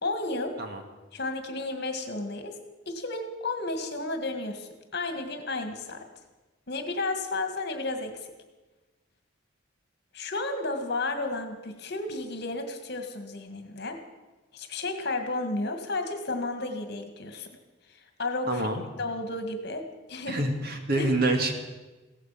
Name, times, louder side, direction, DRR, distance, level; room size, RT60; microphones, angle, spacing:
voice 1, 0.0-0.6 1.1-6.0 6.7-8.3 10.1-14.0 14.5-17.5 17.9-18.7 19.0-20.4 21.0-21.1, left 2 dB, 55° left, 6 dB, 1.9 m, -32 dB
voice 2, 18.5-18.8 20.3-21.5, right 2 dB, 50° right, 4 dB, 2.2 m, -26 dB
16.5 x 14.5 x 5.9 m, 1.2 s
head